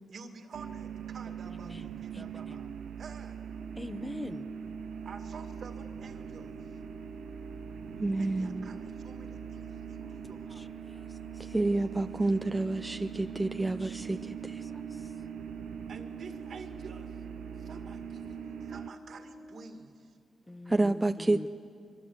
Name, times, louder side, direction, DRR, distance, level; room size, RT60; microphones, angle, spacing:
voice 1, 0.1-2.7 3.0-3.4 5.0-6.6 8.2-10.7 15.9-17.1 17.6-20.1, right 4 dB, 65° right, 6 dB, 2.1 m, -49 dB
sound 1, 0.5-18.9, right 9 dB, 85° right, 0.5 m, -42 dB
voice 2, 1.3-2.7 3.8-4.5 10.0-10.2 10.5-11.5 13.8-14.3 14.6-15.2 20.5-21.5, left 1 dB, 10° left, 10 dB, 0.8 m, -45 dB
Brass instrument, 3.4-19.8, left 1 dB, 35° left, 3.5 m, -49 dB
voice 3, 8.0-8.7 11.4-14.6 20.7-21.5, right 2 dB, 20° right, 8 dB, 0.6 m, -29 dB
24.5 x 23.5 x 8.1 m, 2.4 s
cardioid pair, 90°, 0 cm